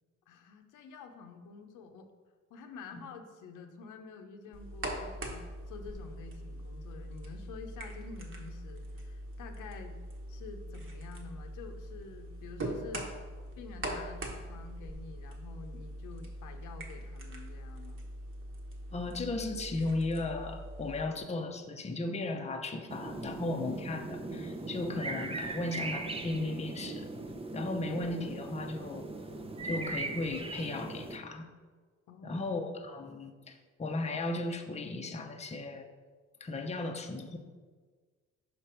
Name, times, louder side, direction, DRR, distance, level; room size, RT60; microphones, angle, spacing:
voice 1, 0.3-2.1 2.5-10.0 10.3-13.1 13.6-18.0 32.1-32.4, left 5 dB, 85° left, 5 dB, 0.8 m, -48 dB
sound 1, 4.5-21.0, right 1 dB, 40° right, 1.2 m, -42 dB
voice 2, 18.9-27.1 27.5-29.1 29.6-31.5 32.2-35.9 36.4-37.4, left 2 dB, 20° left, 4 dB, 0.7 m, -36 dB
sound 2, 22.9-31.2, right 2 dB, 20° right, 0.6 m, -39 dB
5.8 x 5.1 x 4.4 m, 1.5 s
cardioid pair, 90°, 30 cm